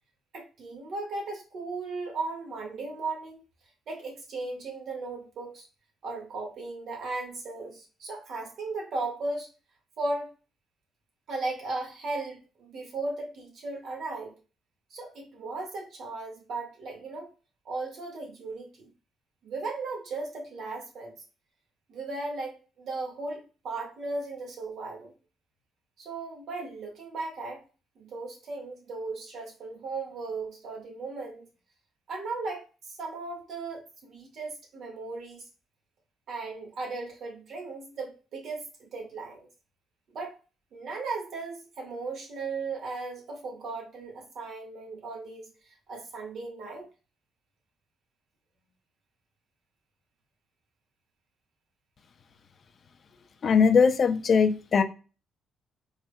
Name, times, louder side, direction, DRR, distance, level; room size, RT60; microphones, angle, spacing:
voice 1, 0.3-3.4 3.9-5.7 6.0-9.5 10.0-10.3 11.3-14.3 14.9-17.3 17.7-18.9 19.4-21.1 21.9-25.1 26.0-27.6 28.0-31.5 32.1-35.4 36.3-39.5 40.1-40.4 40.7-46.8, right 3 dB, 65° right, 1 dB, 1.7 m, -36 dB
voice 2, 53.4-54.8, left 6 dB, 50° left, 9 dB, 0.5 m, -20 dB
4.4 x 3.5 x 2.2 m, 0.34 s
cardioid pair, 90°, 0 cm